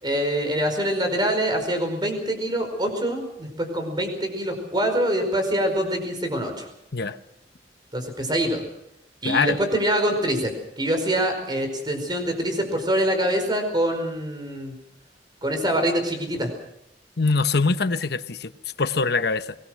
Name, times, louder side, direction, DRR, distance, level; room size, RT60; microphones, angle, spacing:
voice 1, 0.0-6.7 7.9-8.6 9.2-14.7 15.4-16.5, right 1 dB, 25° right, 5 dB, 5.0 m, -25 dB
voice 2, 9.2-9.6 17.2-18.5 18.8-19.6, left 4 dB, 65° left, 11 dB, 1.0 m, -23 dB
23.5 x 20.0 x 6.4 m, 0.79 s
head